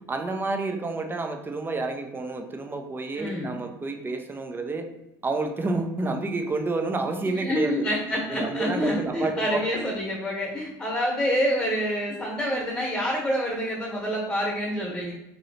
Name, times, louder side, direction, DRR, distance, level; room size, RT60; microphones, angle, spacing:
voice 1, 0.1-4.9 5.2-7.9 8.3-9.7, right 3 dB, 20° right, 5 dB, 0.5 m, -29 dB
voice 2, 3.1-3.5 7.4-15.1, equal, 10° left, -4 dB, 1.1 m, -27 dB
3.1 x 2.9 x 2.7 m, 0.92 s
hypercardioid pair, 80°, 11 cm